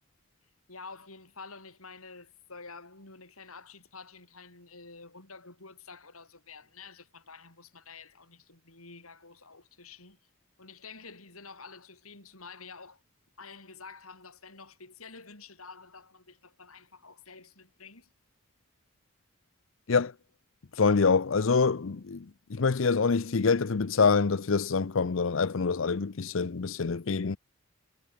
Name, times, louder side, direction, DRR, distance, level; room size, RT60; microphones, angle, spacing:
voice 1, 0.7-10.2 10.6-13.0 13.4-18.1, left 4 dB, 90° left, 7.8 m, -49 dB
voice 2, 20.8-27.4, left 4 dB, 70° left, 0.6 m, -26 dB
head